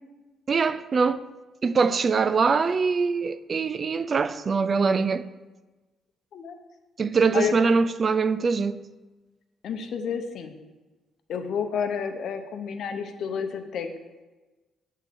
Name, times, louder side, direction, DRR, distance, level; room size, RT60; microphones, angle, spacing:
voice 1, 0.5-1.2 1.6-5.3 7.0-8.8, right 5 dB, 40° right, 0.3 m, -23 dB
voice 2, 9.6-10.6 11.3-13.9, left 7 dB, 70° left, 0.8 m, -30 dB
8.0 x 3.7 x 6.7 m
cardioid pair, 90°, 0 cm